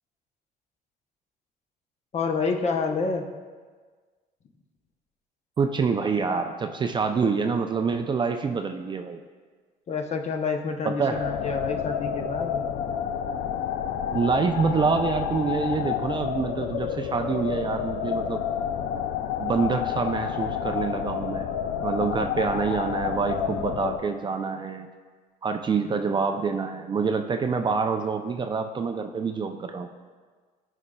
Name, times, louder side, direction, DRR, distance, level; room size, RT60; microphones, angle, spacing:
voice 1, 2.1-3.2 9.9-12.6, left 4 dB, 40° left, 4 dB, 0.7 m, -28 dB
voice 2, 5.6-9.2 10.8-11.2 14.1-18.4 19.4-21.5 21.8-24.9 25.4-29.9, right 5 dB, 30° right, 6 dB, 0.4 m, -26 dB
sound 1, 11.1-24.0, left 8 dB, 85° left, 0.4 m, -29 dB
13.5 x 4.9 x 2.2 m, 1.5 s
cardioid pair, 110°, 17 cm